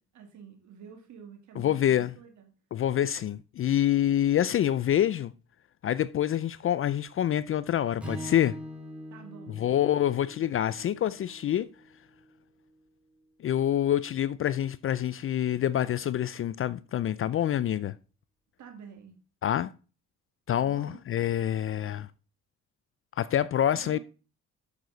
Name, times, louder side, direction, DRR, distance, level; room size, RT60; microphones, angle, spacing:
voice 1, 0.0-2.5 9.1-9.7 10.7-10.8 18.6-19.2 20.6-21.0 23.8-24.0, right 7 dB, 75° right, 2.2 m, -49 dB
voice 2, 1.6-2.1 2.7-5.3 5.8-8.6 9.6-11.7 13.4-18.0 19.4-19.7 20.5-22.1 23.2-24.0, left 11 dB, 45° left, 0.4 m, -26 dB
Strum, 8.0-12.3, equal, 5° right, 3.1 m, -43 dB
8.4 x 6.6 x 4.0 m
cardioid pair, 90°, 30 cm